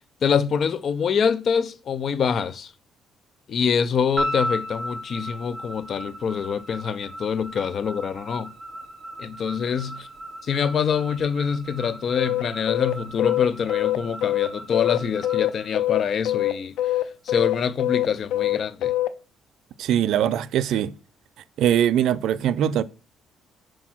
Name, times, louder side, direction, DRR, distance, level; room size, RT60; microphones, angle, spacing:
voice 1, 0.2-2.7 3.5-8.5 9.2-10.1 10.4-16.9 17.3-18.9, left 7 dB, 45° left, 0.5 m, -25 dB
sound 1, 4.2-16.5, equal, ahead, 3.3 m, -36 dB
sound 2, 12.2-19.1, left 14 dB, 90° left, 0.6 m, -24 dB
voice 2, 19.8-20.9 21.6-22.8, right 10 dB, 70° right, 0.5 m, -21 dB
6.2 x 4.5 x 6.0 m
cardioid pair, 145°, 0 cm